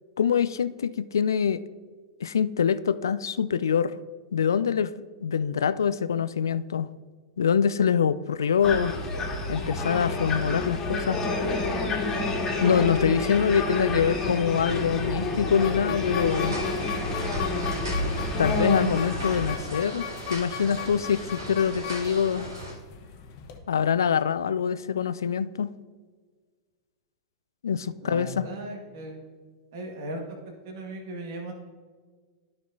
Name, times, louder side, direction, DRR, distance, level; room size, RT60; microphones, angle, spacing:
voice 1, 0.2-1.6 2.2-4.0 4.3-4.9 5.2-6.9 7.4-8.9 9.5-11.2 12.6-16.6 18.4-22.5 23.7-25.7 27.6-28.4, left 7 dB, 70° left, 14 dB, 0.3 m, -24 dB
sound 1, 8.6-19.6, left 2 dB, 25° left, 2.0 m, -28 dB
sound 2, 15.6-23.6, left 8 dB, 50° left, 1.1 m, -39 dB
sound 3, 16.3-22.7, equal, 75° right, 2.5 m, -38 dB
voice 2, 28.0-29.2 29.7-30.2 30.6-31.5, right 1 dB, 55° right, 2 dB, 1.6 m, -37 dB
13.0 x 6.0 x 2.7 m, 1.5 s
figure-of-eight pair, 95°, 2 cm